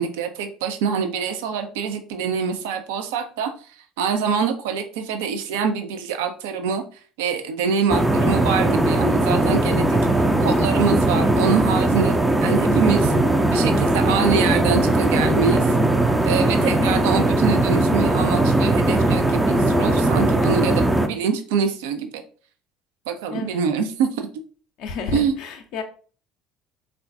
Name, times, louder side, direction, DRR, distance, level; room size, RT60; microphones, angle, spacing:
voice 1, 0.0-3.5 4.0-6.8 7.2-10.0 10.4-13.1 13.5-15.7 16.3-22.2 23.1-24.3 25.1-25.3, right 6 dB, 70° right, 7 dB, 0.5 m, -25 dB
voice 2, 7.9-8.4 14.1-14.6 16.6-17.0 23.3-23.6 24.8-25.8, left 5 dB, 60° left, 5 dB, 0.5 m, -33 dB
sound 1, 7.9-21.1, right 1 dB, 10° right, 0.4 m, -19 dB
3.7 x 2.4 x 3.4 m, 0.41 s
figure-of-eight pair, 60°, 0 cm